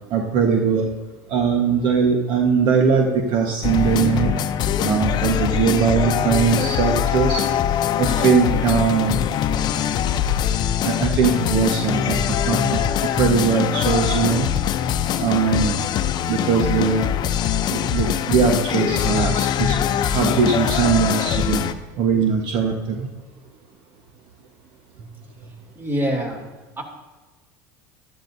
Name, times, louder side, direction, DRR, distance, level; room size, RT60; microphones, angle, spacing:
voice 1, 0.1-0.9 1.3-4.3 4.8-7.4 8.0-9.2 10.8-12.8 13.2-14.5 15.2-15.8 16.3-17.1 17.7-21.6 22.0-23.1, right 6 dB, 60° right, 2 dB, 1.3 m, -20 dB
sound 1, 3.6-21.7, left 9 dB, 50° left, 0.7 m, -22 dB
voice 2, 25.8-26.4 26.8-26.9, equal, 25° right, 2 dB, 3.0 m, -24 dB
14.5 x 12.5 x 2.7 m, 1.2 s
supercardioid pair, 95°, 10 cm